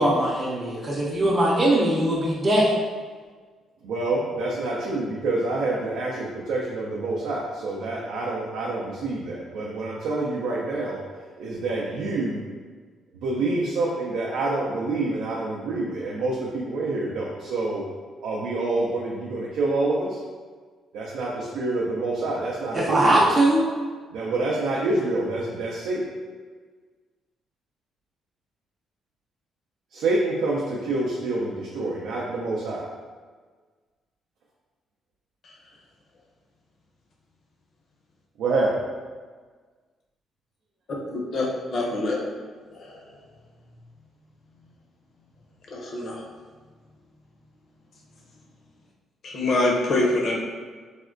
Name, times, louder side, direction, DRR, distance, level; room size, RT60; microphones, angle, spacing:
voice 1, 0.0-2.7 22.7-23.7, right 1 dB, 30° right, -5 dB, 0.5 m, -21 dB
voice 2, 3.8-11.0 11.4-12.4 13.2-17.8 18.2-20.2 20.9-23.2 24.1-26.0 29.9-32.9 38.4-38.8, right 2 dB, 85° right, -4 dB, 0.4 m, -27 dB
voice 3, 41.1-41.5 41.7-42.2 42.7-43.0 45.7-46.2 49.2-50.5, left 2 dB, 55° left, -2 dB, 0.6 m, -25 dB
3.5 x 2.1 x 2.4 m, 1.5 s
cardioid pair, 90°, 0 cm